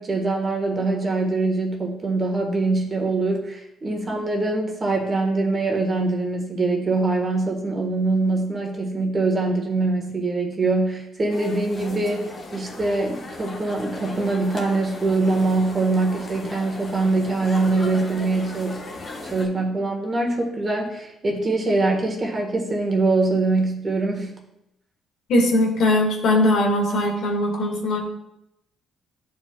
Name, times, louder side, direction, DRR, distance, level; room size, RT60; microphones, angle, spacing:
voice 1, 0.0-18.9 19.3-24.3, right 3 dB, 30° right, 1 dB, 1.4 m, -23 dB
sound 1, 11.3-19.5, left 2 dB, 35° left, 1.1 m, -37 dB
voice 2, 25.3-28.0, left 1 dB, 70° left, 0 dB, 1.7 m, -20 dB
11.0 x 4.8 x 2.3 m, 0.84 s
cardioid pair, 110°, 0 cm